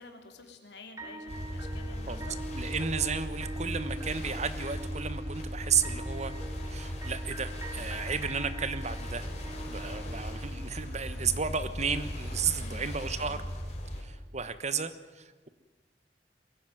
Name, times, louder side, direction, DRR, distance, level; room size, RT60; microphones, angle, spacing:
voice 1, 0.0-2.4 12.5-12.9 13.2-13.5, left 2 dB, 70° left, 4 dB, 3.3 m, -50 dB
sound 1, 1.0-11.0, right 1 dB, 20° right, 1.8 m, -44 dB
sound 2, 1.3-14.0, equal, 40° left, 4.0 m, -37 dB
voice 2, 2.5-6.3 6.7-9.3 9.7-13.4 14.0-15.5, right 6 dB, 40° right, 13 dB, 1.2 m, -33 dB
22.5 x 16.0 x 9.2 m, 1.3 s
head